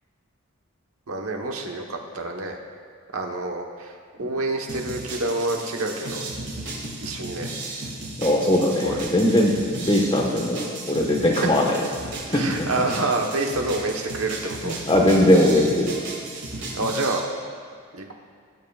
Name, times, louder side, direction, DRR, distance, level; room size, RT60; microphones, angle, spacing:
voice 1, 1.1-2.6 3.1-6.3 7.0-7.5 8.8-9.0 12.3-14.8 16.5-17.3 17.9-18.1, right 2 dB, 85° right, 2 dB, 1.1 m, -28 dB
sound 1, 4.7-17.2, right 2 dB, 55° right, 2.0 m, -35 dB
voice 2, 8.2-11.7 12.3-12.7 14.6-15.9, left 1 dB, 25° left, -1 dB, 1.3 m, -20 dB
18.0 x 9.4 x 2.4 m, 2.1 s
head